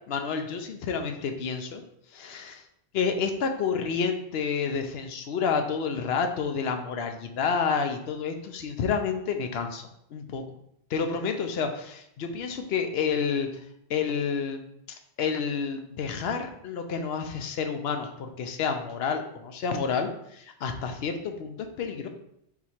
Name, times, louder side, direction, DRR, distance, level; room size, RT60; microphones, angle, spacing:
voice 1, 0.1-1.8 2.1-2.6 2.9-10.4 10.9-13.5 13.9-14.6 15.2-22.1, left 6 dB, 75° left, 6 dB, 0.8 m, -29 dB
3.9 x 3.0 x 4.3 m, 0.75 s
omnidirectional pair, 1.1 m